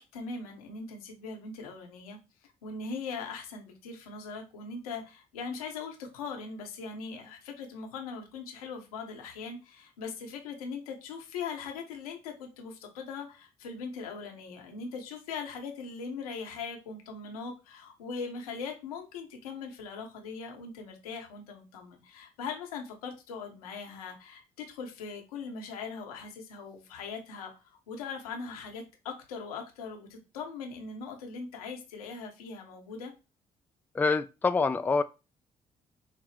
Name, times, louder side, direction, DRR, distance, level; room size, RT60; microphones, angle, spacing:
voice 1, 0.0-33.1, left 5 dB, 80° left, 0.8 m, -40 dB
voice 2, 33.9-35.0, left 4 dB, 10° left, 0.3 m, -26 dB
5.7 x 2.0 x 3.1 m
figure-of-eight pair, 45°, 18 cm